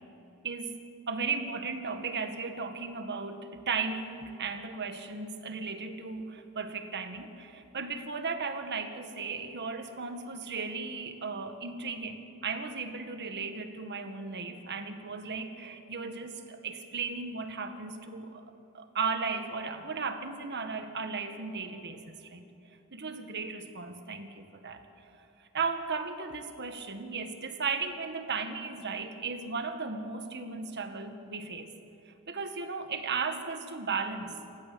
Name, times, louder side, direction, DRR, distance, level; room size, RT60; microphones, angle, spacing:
voice 1, 0.4-0.8 1.1-18.4 18.7-22.5 22.9-25.2 25.5-31.7 32.0-34.4, right 4 dB, 50° right, 7 dB, 1.7 m, -36 dB
28.5 x 15.5 x 7.0 m, 2.9 s
head